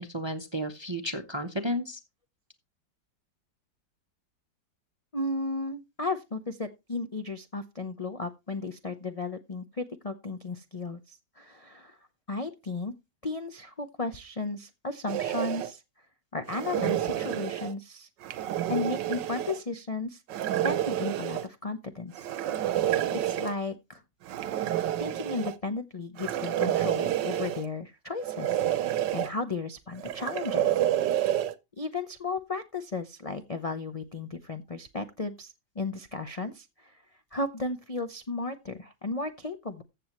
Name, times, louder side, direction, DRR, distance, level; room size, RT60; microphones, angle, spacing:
voice 1, 0.0-2.0, equal, 25° right, 0.6 m, -32 dB
voice 2, 5.1-12.0 12.3-12.9 13.2-15.8 16.3-18.1 18.7-22.3 22.7-24.0 25.0-28.6 29.1-30.8 31.8-37.0 37.3-39.8, left 3 dB, 45° left, 0.4 m, -34 dB
sound 1, 15.1-15.7 16.5-17.7 18.2-19.6 20.3-21.5 22.2-23.5 24.3-25.6 26.2-27.7 28.2-29.3 30.0-31.5, right 12 dB, 75° right, 1.4 m, -29 dB
14.5 x 7.7 x 3.1 m
omnidirectional pair, 2.0 m